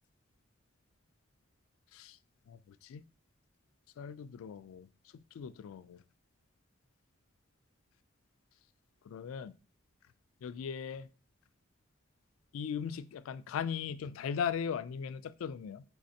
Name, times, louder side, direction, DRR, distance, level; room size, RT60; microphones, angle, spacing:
voice 1, 2.5-3.0 4.0-4.9 5.3-6.0 9.1-9.6 10.4-11.1 12.5-15.8, left 7 dB, 85° left, 0.3 m, -38 dB
5.3 x 3.1 x 2.7 m
head